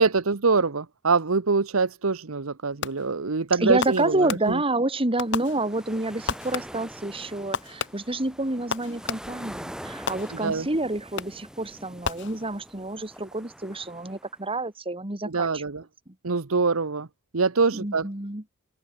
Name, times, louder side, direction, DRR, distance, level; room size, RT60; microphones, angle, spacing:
voice 1, 0.0-4.6 10.4-10.7 15.2-15.8 16.2-17.1 17.3-18.1, right 4 dB, 90° right, 1.0 m, -24 dB
Fireworks, 2.8-3.3 3.8-4.8 5.2-6.0 6.3-7.0 7.5-9.5 10.1-10.7 11.2-11.6 12.0-12.8, left 5 dB, 60° left, 1.9 m, -34 dB
voice 2, 3.6-15.6 17.7-18.4, right 2 dB, 25° right, 2.4 m, -28 dB
sound 1, 5.2-14.4, equal, 5° right, 5.4 m, -44 dB
open air
head